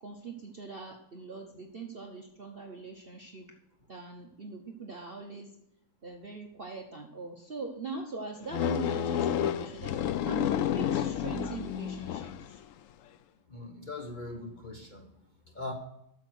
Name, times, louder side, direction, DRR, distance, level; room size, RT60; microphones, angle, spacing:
voice 1, 0.0-3.5 3.9-5.6 6.0-12.6, right 4 dB, 40° right, 2 dB, 0.9 m, -42 dB
sound 1, 8.5-12.6, left 10 dB, 85° left, 0.7 m, -30 dB
voice 2, 13.5-15.1 15.5-15.7, left 2 dB, 30° left, 2 dB, 1.0 m, -40 dB
8.6 x 7.2 x 6.3 m, 0.76 s
omnidirectional pair, 1.9 m